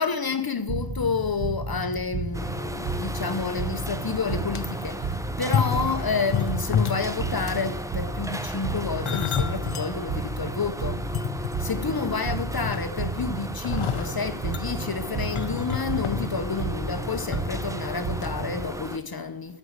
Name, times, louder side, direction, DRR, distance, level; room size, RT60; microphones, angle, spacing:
voice 1, 0.0-11.0 11.6-19.6, left 5 dB, 50° left, 0.7 m, -29 dB
sound 1, 0.7-18.8, right 3 dB, 90° right, 1.0 m, -33 dB
sound 2, 2.3-19.0, equal, 5° right, 0.6 m, -37 dB
sound 3, 4.2-4.6 5.4-7.1 7.4-7.7 8.6-9.9 10.4-10.5 11.0-12.0 12.3-13.1 13.6-17.4 17.7-17.9 18.2-18.3, left 8 dB, 80° left, 0.7 m, -30 dB
11.0 x 5.1 x 7.9 m
wide cardioid pair, 60°, 49 cm